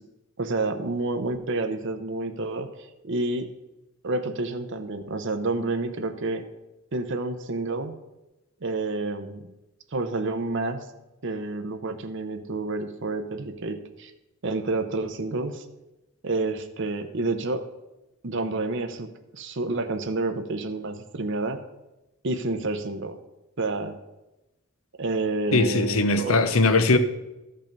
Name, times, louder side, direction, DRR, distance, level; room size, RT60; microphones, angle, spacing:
voice 1, 0.4-3.5 4.0-6.5 6.9-7.9 8.6-9.5 9.9-10.8 11.2-14.1 14.4-15.7 16.2-17.6 18.2-21.6 22.2-23.2 23.6-24.0 25.0-26.4, right 2 dB, 55° right, 7 dB, 0.8 m, -29 dB
voice 2, 25.5-27.0, left 3 dB, 70° left, 10 dB, 0.8 m, -20 dB
14.0 x 5.5 x 5.3 m, 1.0 s
head